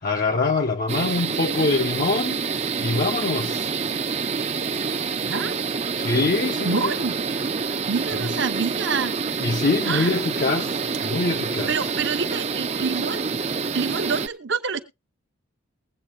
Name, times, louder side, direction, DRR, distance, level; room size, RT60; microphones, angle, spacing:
voice 1, 0.0-3.7 5.9-6.9 8.2-8.3 9.4-11.7, left 3 dB, 45° left, 0.6 m, -24 dB
sound 1, 0.9-14.3, right 5 dB, 30° right, 0.5 m, -27 dB
voice 2, 5.1-5.5 6.6-7.1 7.6-9.1 9.9-10.1 11.7-13.2 13.7-14.8, right 4 dB, 55° right, 0.8 m, -27 dB
21.0 x 8.2 x 2.4 m
head